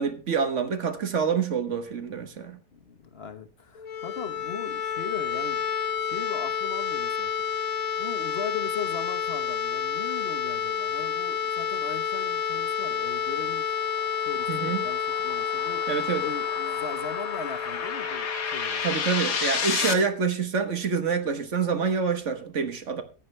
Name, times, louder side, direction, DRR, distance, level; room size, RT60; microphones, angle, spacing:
voice 1, 0.0-2.6 14.5-14.8 15.9-16.2 18.8-23.0, right 5 dB, 50° right, 1.5 m, -27 dB
voice 2, 2.7-5.6 6.0-7.4 8.0-13.8 14.2-15.9 16.2-18.8 19.8-20.1, left 6 dB, 40° left, 1.3 m, -38 dB
sound 1, 3.7-19.5, left 8 dB, 60° left, 1.4 m, -30 dB
sound 2, 13.1-19.9, left 6 dB, 80° left, 2.0 m, -32 dB
14.5 x 10.0 x 3.3 m
omnidirectional pair, 1.7 m